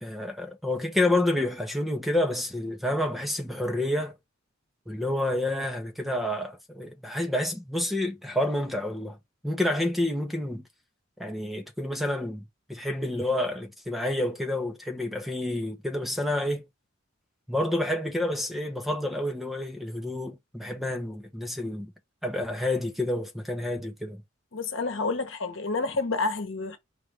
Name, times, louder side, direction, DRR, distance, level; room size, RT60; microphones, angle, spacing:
voice 1, 0.0-4.2 4.9-9.2 9.4-10.6 11.2-12.4 12.7-16.6 17.5-21.9 22.2-24.2, left 1 dB, ahead, 0.8 m, -29 dB
voice 2, 24.5-26.8, left 3 dB, 75° left, 1.0 m, -29 dB
4.8 x 3.3 x 3.3 m
head